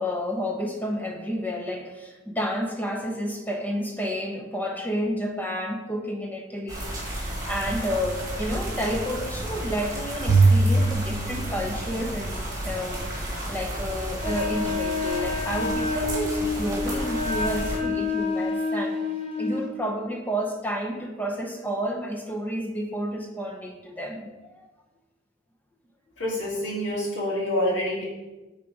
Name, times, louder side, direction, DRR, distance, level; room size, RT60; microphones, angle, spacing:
voice 1, 0.0-19.1 19.4-24.7, equal, 10° left, 2 dB, 0.6 m, -30 dB
sound 1, 6.7-17.8, right 1 dB, 15° right, 1.8 m, -33 dB
Bowed string instrument, 10.3-12.7, right 3 dB, 65° right, 0.7 m, -22 dB
Wind instrument woodwind instrument, 14.2-19.7, left 3 dB, 30° left, 0.9 m, -28 dB
voice 2, 26.2-28.0, left 1 dB, 70° left, -4 dB, 2.4 m, -27 dB
8.3 x 4.0 x 4.8 m, 1.1 s
head